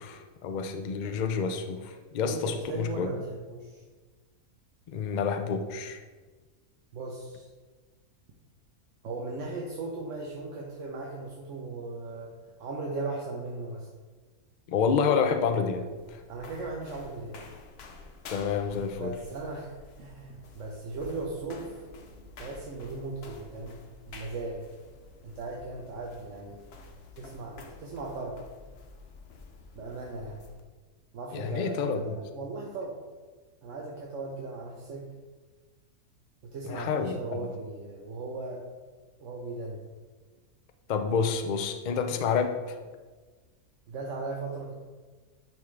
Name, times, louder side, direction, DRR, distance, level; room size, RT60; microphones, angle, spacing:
voice 1, 0.0-3.1 4.9-6.0 14.7-16.2 18.3-19.1 31.3-32.2 36.6-37.4 40.9-42.8, left 6 dB, 70° left, 6 dB, 0.4 m, -29 dB
voice 2, 2.3-3.8 6.9-7.5 9.0-13.9 16.3-17.4 18.9-21.8 22.4-24.6 25.2-26.6 27.2-28.4 29.7-30.4 31.1-33.0 33.6-35.1 36.4-38.6 39.2-39.8 43.9-44.8, right 3 dB, 60° right, -1 dB, 1.1 m, -37 dB
sound 1, 15.7-30.6, left 3 dB, 55° left, 0.8 m, -49 dB
10.5 x 3.6 x 3.2 m, 1.4 s
omnidirectional pair, 1.5 m